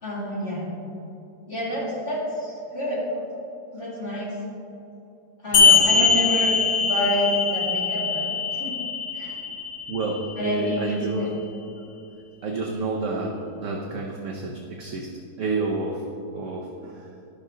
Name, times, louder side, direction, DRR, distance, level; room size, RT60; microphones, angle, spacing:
voice 1, 0.0-0.7 1.5-3.0 3.7-4.4 5.4-8.7 9.1-9.4 10.4-11.3, equal, 40° left, -7 dB, 2.6 m, -28 dB
sound 1, 5.5-10.6, left 5 dB, 85° left, 1.5 m, -22 dB
voice 2, 5.5-6.2 9.9-11.3 12.4-15.1 15.4-16.0 16.3-17.1, right 3 dB, 55° right, -1 dB, 1.0 m, -29 dB
12.0 x 6.3 x 3.8 m, 2.8 s
omnidirectional pair, 1.7 m